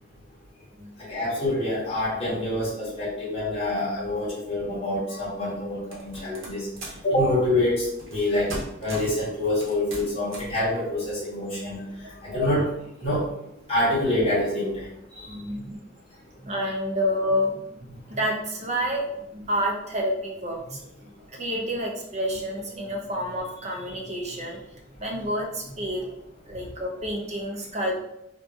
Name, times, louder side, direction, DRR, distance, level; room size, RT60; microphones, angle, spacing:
voice 1, 1.1-6.7 7.0-8.5 8.8-11.8 12.2-12.7 13.0-13.2 13.7-14.9 15.2-15.3, left 1 dB, 30° left, -8 dB, 1.1 m, -26 dB
voice 2, 4.7-5.0 12.0-12.1 15.3-15.8 16.4-17.6 17.9-24.6 25.0-26.1 26.5-28.0, equal, 35° right, -1 dB, 0.5 m, -29 dB
sound 1, 5.9-7.1 8.0-8.2 8.5-9.2 9.6-10.6, right 1 dB, 90° right, 0.8 m, -38 dB
2.6 x 2.5 x 2.4 m, 0.81 s
head